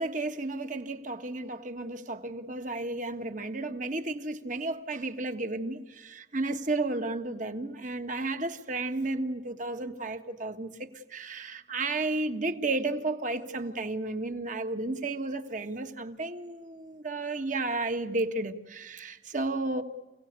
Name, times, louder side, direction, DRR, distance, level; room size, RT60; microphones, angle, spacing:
voice 1, 0.0-19.8, right 2 dB, 45° right, 1.6 m, -33 dB
29.0 x 18.0 x 8.3 m
head